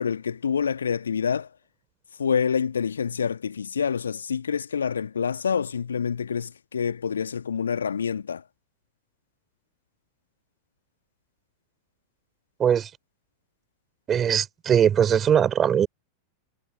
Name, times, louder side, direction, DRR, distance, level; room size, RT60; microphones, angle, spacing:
voice 1, 0.0-1.5 2.2-8.4, left 7 dB, 70° left, 1.8 m, -27 dB
voice 2, 12.6-12.9 14.1-15.9, right 8 dB, 25° right, 4.3 m, -20 dB
figure-of-eight pair, 90°, 0 cm